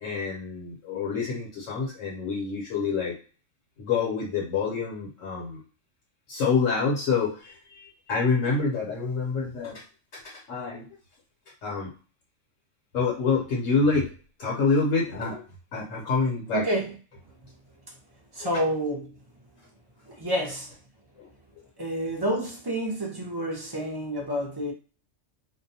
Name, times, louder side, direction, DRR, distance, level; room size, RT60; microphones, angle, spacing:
voice 1, 0.0-3.1 3.8-5.6 6.3-9.8 10.1-10.9 11.6-11.9 12.9-14.1 14.4-15.4 15.7-16.6 18.4-18.5 21.2-21.3, left 4 dB, 80° left, -3 dB, 1.2 m, -27 dB
voice 2, 16.5-16.9 18.4-19.1 20.1-20.7 21.8-24.7, equal, 25° right, -1 dB, 0.5 m, -29 dB
2.6 x 2.2 x 2.7 m, 0.36 s
omnidirectional pair, 1.3 m